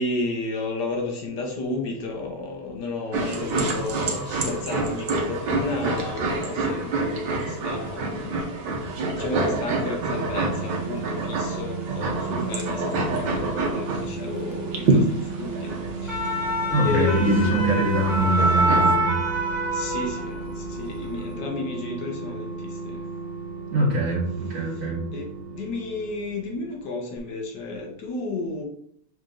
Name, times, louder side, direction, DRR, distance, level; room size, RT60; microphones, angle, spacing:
voice 1, 0.0-8.5 9.2-16.5 16.8-17.5 19.7-23.1 25.1-28.6, left 2 dB, 75° left, 2 dB, 1.7 m, -32 dB
sound 1, 3.1-18.9, right 2 dB, 80° right, 1.7 m, -28 dB
sound 2, 8.7-26.9 27.2-27.3, right 4 dB, 30° right, 1.0 m, -35 dB
sound 3, 15.8-20.6 20.9-21.2, right 1 dB, 25° left, 2.9 m, -25 dB
voice 2, 16.7-19.2 23.7-25.0, right 1 dB, 55° right, -8 dB, 1.8 m, -23 dB
6.1 x 4.1 x 3.8 m, 0.65 s
omnidirectional pair, 1.9 m